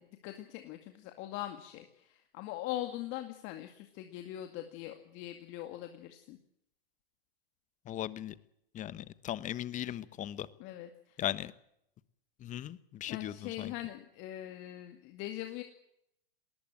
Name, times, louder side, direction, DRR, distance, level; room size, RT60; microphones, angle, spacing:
voice 1, 0.0-6.4 10.6-11.2 13.1-15.6, left 14 dB, 40° left, 6 dB, 2.2 m, -42 dB
voice 2, 7.9-8.3 8.7-10.5 11.2-11.5 12.4-13.7, left 12 dB, 25° left, 17 dB, 1.2 m, -38 dB
20.0 x 19.0 x 7.8 m, 0.75 s
hypercardioid pair, 115°, 30 cm